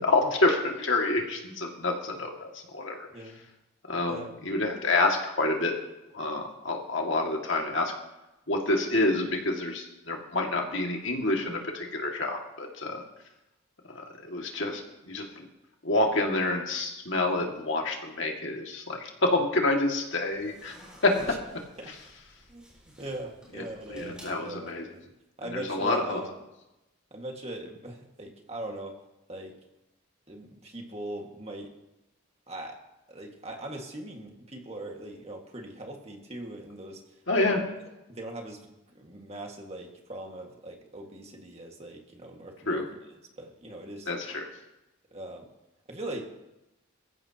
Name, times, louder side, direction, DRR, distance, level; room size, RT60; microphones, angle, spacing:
voice 1, 0.0-3.1 3.9-5.7 6.1-7.9 8.5-13.0 13.9-15.5 15.8-20.8 21.0-21.2 23.5-23.6 23.9-24.8 25.5-26.2 37.3-37.6 42.7-42.9 44.1-44.5, left 2 dB, 55° left, 1 dB, 2.1 m, -28 dB
voice 2, 3.1-3.4 4.1-4.4 21.8-21.9 22.5-25.1 25.4-26.3 27.1-29.0 29.3-29.5 30.3-31.7 32.5-32.8 33.1-37.5 38.1-42.9 43.4-44.1 45.1-45.5 45.9-46.2, right 1 dB, 30° right, 1 dB, 1.8 m, -40 dB
sound 1, 20.2-25.0, equal, 5° right, 5.8 m, -51 dB
22.5 x 14.5 x 2.9 m, 0.96 s
head